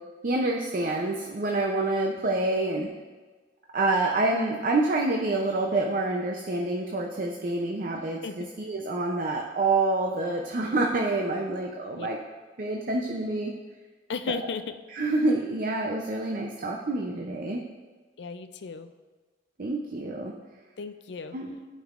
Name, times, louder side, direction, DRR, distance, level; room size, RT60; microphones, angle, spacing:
voice 1, 0.2-2.9 3.7-12.2 12.6-13.5 14.9-17.6 19.6-20.3 21.3-21.5, right 2 dB, 50° right, 0 dB, 0.6 m, -27 dB
voice 2, 7.9-8.5 12.0-12.1 14.1-14.8 18.2-18.9 20.8-21.4, left 5 dB, 65° left, 10 dB, 0.4 m, -35 dB
12.0 x 5.4 x 2.5 m, 1.4 s
head